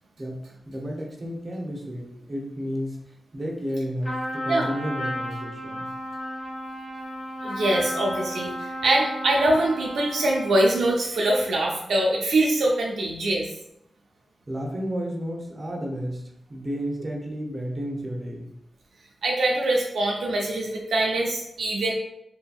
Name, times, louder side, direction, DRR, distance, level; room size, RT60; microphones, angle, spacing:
voice 1, 0.2-3.0 3.3-5.9 14.5-16.2 16.5-18.5, equal, 35° right, -1 dB, 0.7 m, -32 dB
Trumpet, 4.0-10.7, equal, 50° left, 1.2 m, -33 dB
voice 2, 7.4-13.5 19.2-21.9, right 1 dB, 85° right, -1 dB, 0.4 m, -23 dB
2.7 x 2.6 x 2.3 m, 0.81 s
cardioid pair, 60°, 0 cm